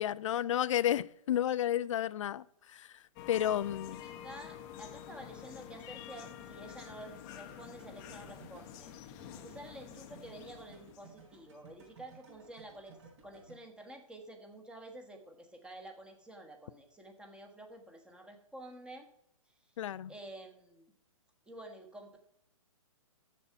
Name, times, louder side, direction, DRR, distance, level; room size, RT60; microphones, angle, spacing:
voice 1, 0.0-2.4 2.7-2.9 3.3-4.0 19.8-20.1, left 11 dB, 60° left, 19 dB, 0.4 m, -31 dB
sound 1, 3.2-11.5, left 10 dB, 30° left, 0.8 m, -48 dB
voice 2, 4.0-8.9 9.4-13.0 13.2-19.1 20.1-20.9 21.5-22.2, right 1 dB, 5° right, 4 dB, 1.2 m, -50 dB
sound 2, 6.2-13.6, right 4 dB, 55° right, 3.5 m, -59 dB
7.2 x 6.8 x 5.6 m, 0.71 s
hypercardioid pair, 135°, 18 cm